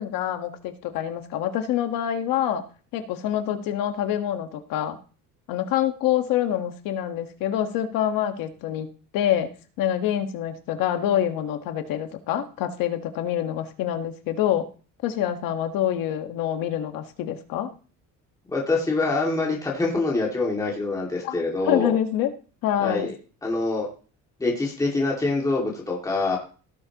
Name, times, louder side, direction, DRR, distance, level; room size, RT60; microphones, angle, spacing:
voice 1, 0.0-2.6 2.9-5.0 5.5-8.9 9.1-14.7 15.0-17.7 21.2-21.4 21.6-22.3 22.6-23.1, left 11 dB, 85° left, 7 dB, 1.6 m, -26 dB
voice 2, 18.5-21.9 22.8-23.1 23.4-23.9 24.4-26.4, left 3 dB, 10° left, -3 dB, 2.3 m, -25 dB
17.0 x 7.0 x 3.0 m, 0.38 s
cardioid pair, 170°, 33 cm